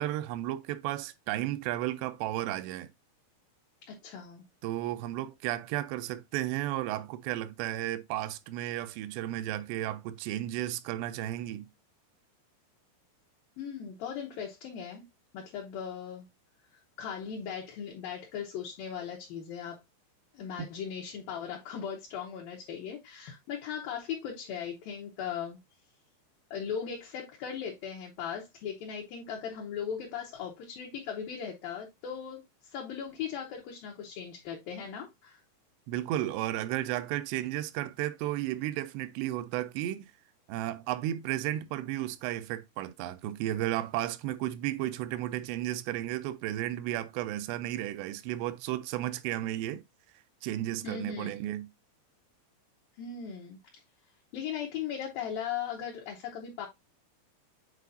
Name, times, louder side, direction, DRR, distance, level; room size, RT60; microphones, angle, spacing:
voice 1, 0.0-2.9 4.6-11.7 20.6-20.7 35.9-40.1 40.5-49.8 50.4-51.7, right 14 dB, 80° right, 2.6 m, -33 dB
voice 2, 3.9-4.4 13.6-15.0 15.3-16.3 17.0-19.8 20.3-25.6 26.5-35.4 50.8-51.3 53.0-53.6 54.3-56.7, left 8 dB, 70° left, 2.3 m, -38 dB
8.3 x 4.5 x 2.6 m
omnidirectional pair, 5.1 m